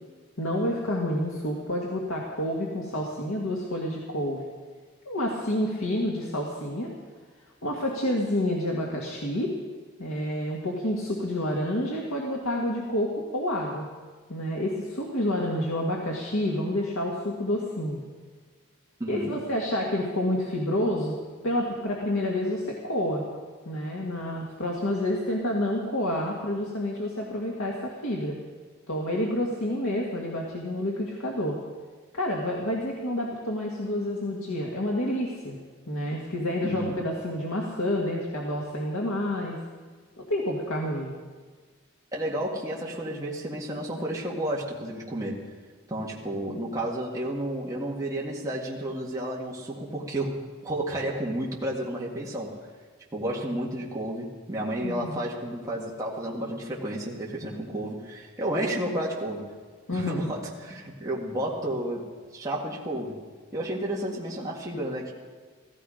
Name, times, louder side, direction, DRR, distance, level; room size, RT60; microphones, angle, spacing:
voice 1, 0.4-4.4 5.1-6.9 7.6-9.5 10.0-13.9 14.3-18.0 19.1-21.2 21.4-23.2 23.7-28.4 28.9-31.6 32.1-35.6 35.9-39.6 40.2-41.1 54.8-55.2 59.9-60.3, left 1 dB, 80° left, -2 dB, 2.0 m, -29 dB
voice 2, 19.0-19.3 36.6-37.0 42.1-45.5 45.9-52.6 53.1-59.5 59.9-63.2 63.5-65.1, right 1 dB, 15° right, -4 dB, 2.0 m, -31 dB
16.0 x 16.0 x 5.1 m, 1.5 s
head